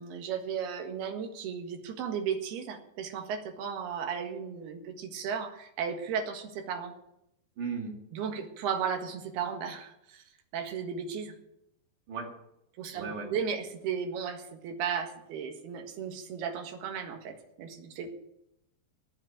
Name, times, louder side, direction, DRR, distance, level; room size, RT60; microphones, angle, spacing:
voice 1, 0.0-6.9 8.1-10.2 10.5-11.4 12.8-18.1, right 7 dB, 75° right, 5 dB, 3.5 m, -35 dB
voice 2, 7.6-8.0 12.1-12.3 12.9-13.3, right 5 dB, 55° right, 0 dB, 3.5 m, -36 dB
18.5 x 6.3 x 8.9 m, 0.80 s
omnidirectional pair, 4.9 m